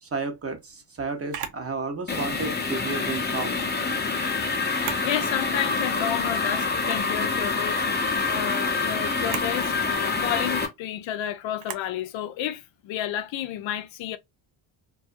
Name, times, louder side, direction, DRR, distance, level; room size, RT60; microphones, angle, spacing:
voice 1, 0.0-3.7, right 4 dB, 30° right, 0.7 m, -32 dB
Camera, 1.3-1.6 3.4-3.7 4.6-5.1 5.6-5.7 6.7-7.1 9.1-9.5 11.6-11.9, right 9 dB, 75° right, 0.7 m, -36 dB
sound 1, 2.1-10.7, left 4 dB, 20° left, 0.6 m, -26 dB
voice 2, 5.0-7.8 8.3-14.2, left 11 dB, 70° left, 0.5 m, -31 dB
2.4 x 2.3 x 2.4 m
cardioid pair, 90°, 49 cm